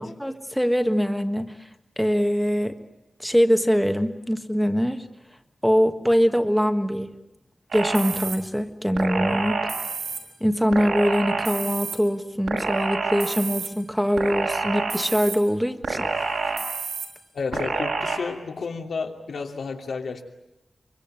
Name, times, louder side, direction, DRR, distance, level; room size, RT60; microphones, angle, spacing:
voice 1, 0.0-1.5 2.0-2.8 3.2-5.0 5.6-7.1 7.7-9.7 10.4-16.1, equal, ahead, 7 dB, 1.4 m, -23 dB
sound 1, 7.7-8.4 9.0-10.2 10.7-12.0 12.5-13.7 14.2-15.4 15.8-17.1 17.5-18.2, right 4 dB, 80° right, 5.7 m, -28 dB
voice 2, 17.3-20.2, left 4 dB, 85° left, 3 dB, 2.9 m, -31 dB
24.5 x 24.5 x 8.9 m, 0.93 s
wide cardioid pair, 155°, 0 cm